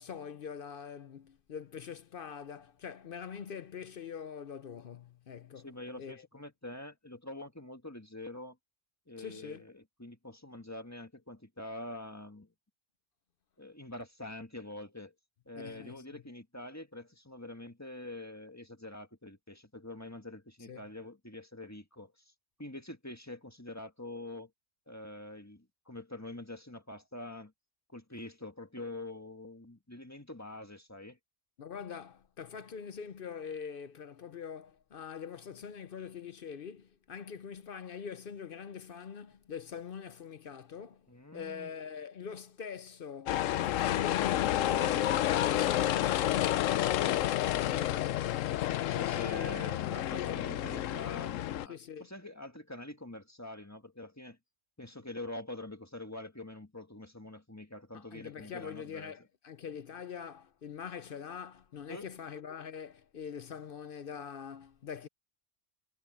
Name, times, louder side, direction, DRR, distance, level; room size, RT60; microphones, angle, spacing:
voice 1, 0.0-5.7 6.0-6.3 9.2-9.6 15.5-16.2 20.7-20.8 31.6-47.2 47.5-48.2 48.9-49.7 50.0-51.0 51.7-52.1 57.9-65.1, left 7 dB, 55° left, 0.8 m, -44 dB
voice 2, 5.6-8.6 9.1-12.5 13.6-15.1 15.5-22.1 22.6-24.5 24.9-27.5 27.9-31.2 41.1-41.7 48.8-54.4 54.8-59.1 61.9-62.1, left 1 dB, 15° left, 1.6 m, -45 dB
sound 1, 43.3-51.7, left 13 dB, 90° left, 1.0 m, -30 dB
omnidirectional pair, 1.3 m